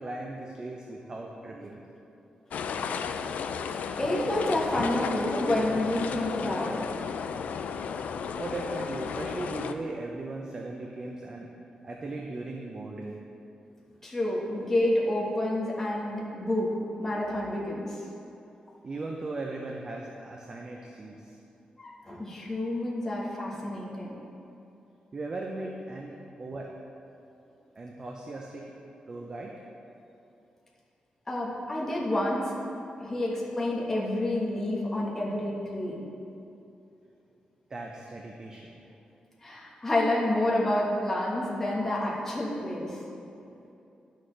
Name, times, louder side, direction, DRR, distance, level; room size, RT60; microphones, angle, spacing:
voice 1, 0.0-1.8 8.4-11.5 11.8-13.2 18.8-21.4 25.1-26.7 27.8-28.6 29.1-29.5 37.7-38.8, right 2 dB, 30° right, -1 dB, 0.5 m, -38 dB
sound 1, 2.5-9.7, left 6 dB, 80° left, 0.3 m, -33 dB
voice 2, 4.0-6.8 14.0-18.0 21.8-24.1 31.3-32.5 33.0-36.0 39.4-43.0, left 1 dB, 15° left, -5 dB, 1.3 m, -29 dB
11.0 x 6.4 x 3.3 m, 2.8 s
wide cardioid pair, 175°, 3 cm